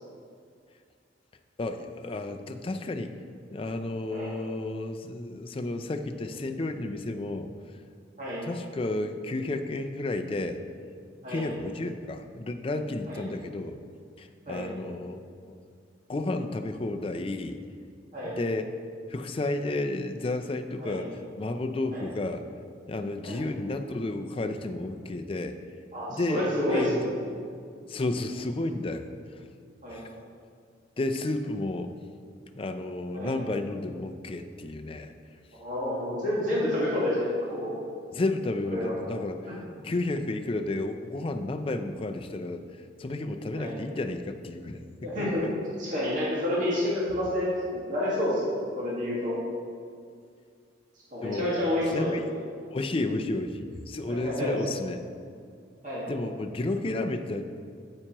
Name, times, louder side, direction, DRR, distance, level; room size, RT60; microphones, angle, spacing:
voice 1, 1.6-3.1 3.5-7.5 8.4-10.6 11.3-13.8 14.2-15.6 16.1-17.6 18.2-18.7 19.1-22.4 22.9-25.6 26.1-27.1 27.9-29.1 29.3-29.5 29.9-30.1 31.0-31.9 32.6-35.1 38.1-39.6 39.8-42.6 43.0-45.5 51.2-51.5 51.9-52.3 52.7-55.0 56.1-57.5, left 2 dB, 30° left, 7 dB, 0.4 m, -32 dB
voice 2, 25.9-27.1 29.8-30.0 33.1-33.3 35.5-37.7 38.7-39.0 39.5-39.6 43.5-43.7 45.0-45.4 45.7-49.4 51.1-52.1 54.1-54.6 55.8-56.0, left 1 dB, 45° right, -7 dB, 1.7 m, -29 dB
9.0 x 8.6 x 3.0 m, 2.2 s
head